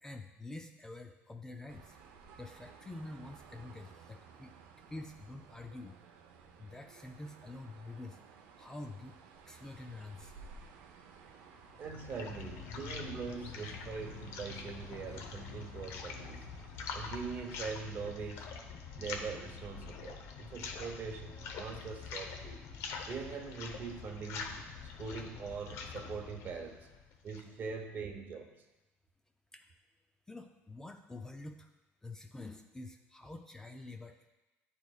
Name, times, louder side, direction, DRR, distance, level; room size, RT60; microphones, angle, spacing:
voice 1, 0.0-2.0 2.4-4.5 4.9-6.0 6.6-8.2 8.6-9.2 9.5-10.4 29.5-29.7 30.3-31.7 32.0-34.3, left 2 dB, 10° left, 5 dB, 0.3 m, -47 dB
sound 1, 1.7-17.9, right 5 dB, 90° right, 0.6 m, -57 dB
sound 2, 11.5-27.6, left 5 dB, 70° left, 0.7 m, -45 dB
voice 2, 11.8-16.5 16.9-18.5 19.0-22.6 23.1-24.7 25.0-26.9 27.2-28.5, right 5 dB, 40° right, 5 dB, 0.7 m, -42 dB
10.0 x 4.2 x 2.3 m, 1.0 s
cardioid pair, 125°, 5 cm